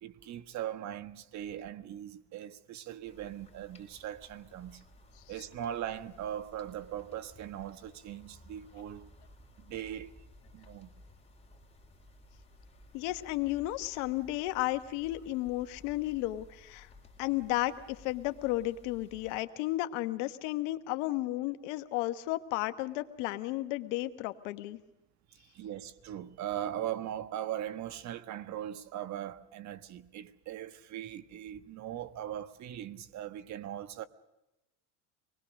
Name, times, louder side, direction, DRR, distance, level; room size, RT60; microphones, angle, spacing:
voice 1, 0.0-4.8 5.3-9.1 9.6-10.2 10.5-10.9 25.4-34.1, right 11 dB, 50° right, 1.5 m, -40 dB
sound 1, 3.0-19.4, left 1 dB, 15° left, 4.2 m, -57 dB
voice 2, 12.9-16.9 17.2-24.8, left 17 dB, 75° left, 1.3 m, -33 dB
25.5 x 20.5 x 6.5 m
supercardioid pair, 105°, 36 cm